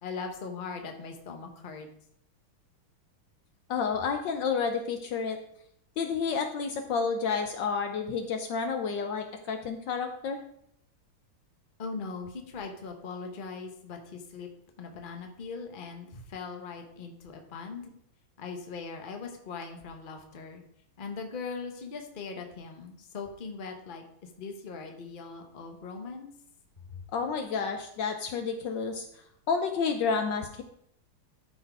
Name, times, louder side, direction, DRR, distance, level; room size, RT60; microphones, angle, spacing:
voice 1, 0.0-1.9 11.8-14.5 14.8-17.9 18.4-20.6 21.0-26.3 26.9-27.0, left 4 dB, 30° left, 4 dB, 1.0 m, -40 dB
voice 2, 3.7-5.4 6.0-10.4 27.1-29.0 29.5-30.6, left 5 dB, 70° left, 6 dB, 1.2 m, -30 dB
12.5 x 4.4 x 4.7 m, 0.71 s
omnidirectional pair, 2.3 m